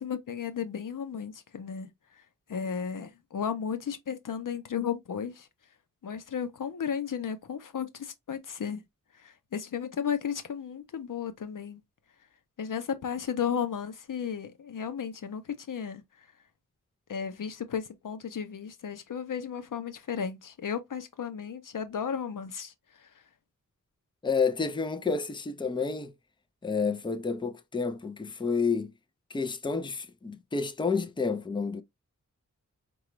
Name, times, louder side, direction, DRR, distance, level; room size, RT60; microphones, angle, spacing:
voice 1, 0.0-1.9 2.5-5.5 6.0-8.8 9.2-11.8 12.6-16.0 17.1-22.7 23.0-23.1, left 7 dB, 85° left, 0.6 m, -34 dB
voice 2, 24.2-26.1 26.6-28.9 29.3-31.8, left 5 dB, 15° left, 0.4 m, -30 dB
4.8 x 2.3 x 3.0 m
wide cardioid pair, 85°, 31 cm